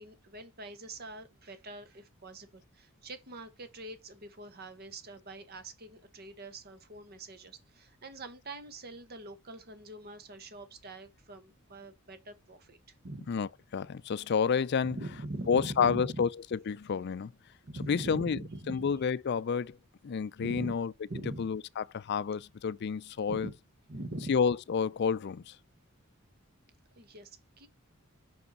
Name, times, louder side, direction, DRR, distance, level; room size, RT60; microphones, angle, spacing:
voice 1, 0.0-12.8 13.0-13.3 14.8-16.2 17.6-19.0 20.4-20.7 21.1-21.5 23.3-23.5 23.9-24.4 27.0-27.7, right 2 dB, 45° right, 1.2 m, -43 dB
voice 2, 13.3-15.1 15.5-17.3 17.7-18.4 18.7-19.8 20.0-23.5 24.3-25.6, left 6 dB, 50° left, 0.4 m, -30 dB
5.5 x 5.4 x 5.4 m
head